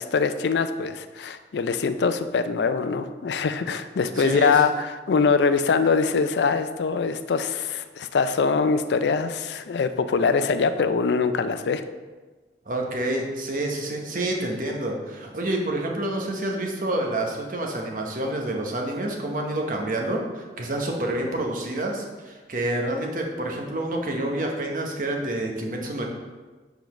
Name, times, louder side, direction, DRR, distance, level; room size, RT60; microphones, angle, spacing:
voice 1, 0.0-11.8, left 5 dB, 75° left, 10 dB, 0.4 m, -23 dB
voice 2, 4.2-4.6 12.7-26.1, right 1 dB, 50° right, 1 dB, 0.9 m, -28 dB
5.1 x 3.9 x 5.8 m, 1.3 s
head